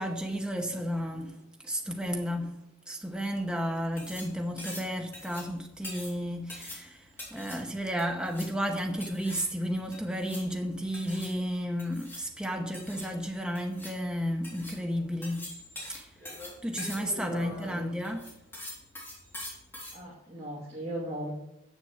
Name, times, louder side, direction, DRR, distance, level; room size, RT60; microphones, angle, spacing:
voice 1, 0.0-2.6 2.9-15.4 15.8-16.1 16.6-18.3, equal, 5° right, 0.7 m, -33 dB
sound 1, 3.7-20.0, left 1 dB, 10° left, 3.4 m, -44 dB
voice 2, 16.7-18.0 19.9-21.3, right 1 dB, 30° right, 2.2 m, -39 dB
7.5 x 7.2 x 7.9 m
head